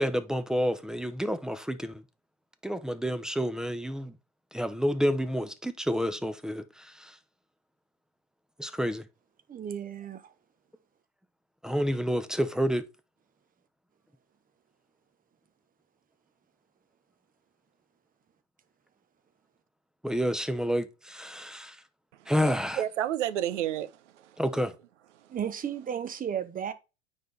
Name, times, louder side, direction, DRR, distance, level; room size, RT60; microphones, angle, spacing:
voice 1, 0.0-2.0 2.6-4.1 4.5-6.6 7.0-7.1 8.6-9.0 11.6-12.8 20.0-21.7 22.3-22.8 24.4-24.7, equal, ahead, 0.8 m, -29 dB
voice 2, 9.5-10.3 25.3-26.7, right 8 dB, 25° right, 1.1 m, -34 dB
voice 3, 22.1-24.7 25.1-25.4, right 11 dB, 75° right, 0.9 m, -33 dB
9.2 x 4.1 x 3.4 m
hypercardioid pair, 95°, 36 cm